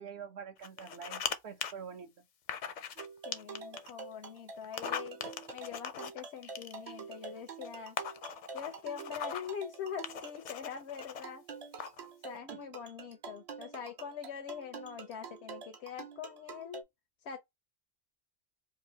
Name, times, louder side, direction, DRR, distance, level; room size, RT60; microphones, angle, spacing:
voice 1, 0.0-2.1 12.5-12.6, right 7 dB, 80° right, 1.0 m, -46 dB
sound 1, 0.6-1.3 1.6-1.7 2.5-3.1 3.3-3.9 4.6-7.0 7.6-7.7 8.0-9.5 10.0-11.2 11.8-12.1, left 7 dB, 55° left, 0.5 m, -39 dB
sound 2, 3.0-16.8, right 5 dB, 50° right, 0.5 m, -47 dB
voice 2, 3.2-5.2 5.5-8.0 8.5-11.4 12.2-16.8 17.2-17.4, left 8 dB, 90° left, 0.9 m, -43 dB
3.9 x 2.5 x 2.7 m
omnidirectional pair, 1.1 m